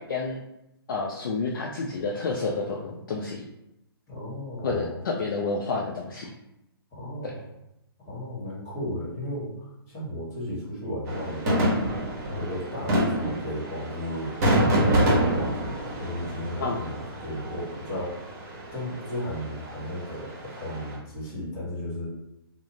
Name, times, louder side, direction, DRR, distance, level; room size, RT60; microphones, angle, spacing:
voice 1, 0.9-3.4 4.6-6.3 16.6-16.9, left 3 dB, 55° left, -1 dB, 0.4 m, -29 dB
voice 2, 4.1-5.0 6.9-7.5 8.0-11.7 12.4-18.3 18.7-22.1, left 1 dB, 25° left, -6 dB, 1.2 m, -34 dB
sound 1, 11.0-21.0, right 1 dB, 40° right, 0.9 m, -27 dB
2.3 x 2.1 x 3.0 m, 0.88 s
figure-of-eight pair, 125°, 13 cm